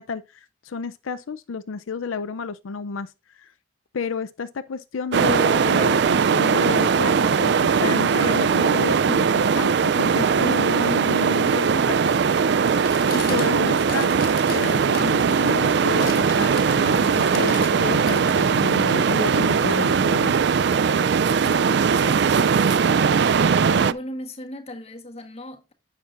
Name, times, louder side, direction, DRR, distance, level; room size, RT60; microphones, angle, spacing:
voice 1, 0.0-3.5 3.9-12.0 13.1-14.1 14.5-20.3, left 5 dB, 80° left, 0.5 m, -31 dB
sound 1, 5.1-23.9, right 6 dB, 55° right, 0.4 m, -20 dB
sound 2, 11.6-17.8 18.0-20.2, left 8 dB, 45° left, 0.8 m, -41 dB
voice 2, 21.4-23.3 23.7-25.7, left 1 dB, 30° left, 1.3 m, -37 dB
10.0 x 7.2 x 2.5 m
head